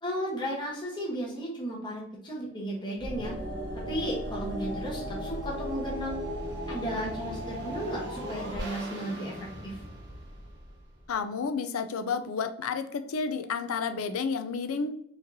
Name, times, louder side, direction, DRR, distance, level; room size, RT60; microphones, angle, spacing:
voice 1, 0.0-3.3 3.9-6.2 6.7-9.8, equal, 20° left, -4 dB, 1.0 m, -34 dB
sound 1, 3.0-11.1, equal, 55° right, 0.9 m, -36 dB
voice 2, 11.1-15.0, left 5 dB, 90° left, 8 dB, 0.5 m, -31 dB
4.9 x 3.1 x 2.7 m, 0.69 s
head